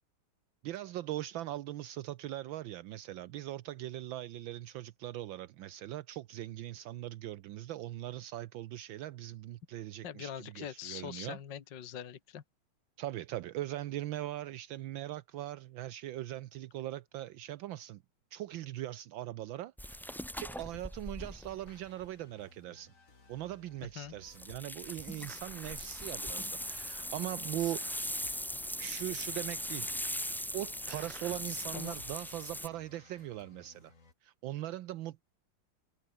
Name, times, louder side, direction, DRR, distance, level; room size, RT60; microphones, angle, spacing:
voice 1, 0.6-11.4 13.0-18.0 18.3-20.0 20.3-22.9 23.3-28.4 28.8-29.9 30.5-33.9 34.2-35.2, right 14 dB, 75° right, 1.4 m, -40 dB
voice 2, 10.0-12.4 24.0-24.1 31.7-32.0, left 9 dB, 65° left, 2.1 m, -43 dB
sound 1, 19.8-22.1 24.3-32.7, equal, ahead, 0.8 m, -40 dB
sound 2, 20.6-34.1, left 3 dB, 40° left, 3.3 m, -60 dB
omnidirectional pair, 2.2 m